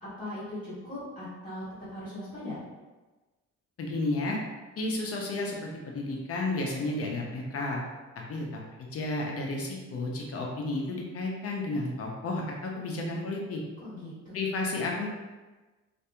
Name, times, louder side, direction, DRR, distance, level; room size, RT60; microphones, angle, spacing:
voice 1, 0.0-1.6 1.9-2.6 13.8-14.4, left 1 dB, 25° left, -12 dB, 1.5 m, -39 dB
voice 2, 3.8-4.4 4.8-7.8 8.3-8.6 8.9-13.6 14.3-15.1, left 2 dB, 50° left, 0 dB, 0.6 m, -32 dB
2.7 x 2.6 x 2.3 m, 1.2 s
cardioid pair, 90°, 30 cm